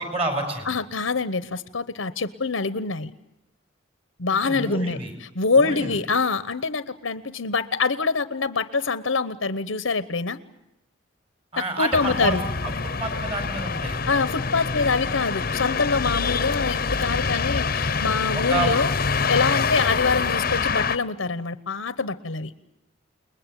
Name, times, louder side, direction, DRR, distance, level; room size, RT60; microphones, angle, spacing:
voice 1, 0.0-0.7 4.4-5.1 5.6-5.9 11.5-14.0 18.3-18.7, right 2 dB, 30° right, 6 dB, 5.8 m, -29 dB
voice 2, 0.7-3.1 4.2-5.0 5.3-10.4 11.6-12.4 14.1-18.9 19.3-22.5, left 4 dB, 85° left, 14 dB, 1.0 m, -25 dB
sound 1, 11.9-21.0, left 5 dB, 45° left, 0.9 m, -26 dB
29.5 x 21.0 x 9.2 m, 0.89 s
head